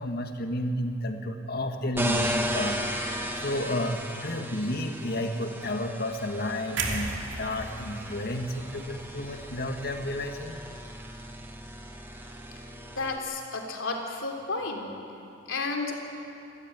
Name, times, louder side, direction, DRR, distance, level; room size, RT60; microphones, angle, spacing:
voice 1, 0.0-2.8 3.4-10.6, left 1 dB, 50° left, 5 dB, 1.8 m, -31 dB
sound 1, 1.9-13.2, equal, 10° right, 1.8 m, -35 dB
sound 2, 6.8-10.8 11.1-11.4, right 3 dB, 70° right, 2.7 m, -37 dB
voice 2, 13.0-14.9 15.5-15.9, left 3 dB, 80° left, 2 dB, 3.3 m, -32 dB
27.0 x 14.5 x 9.5 m, 2.7 s
head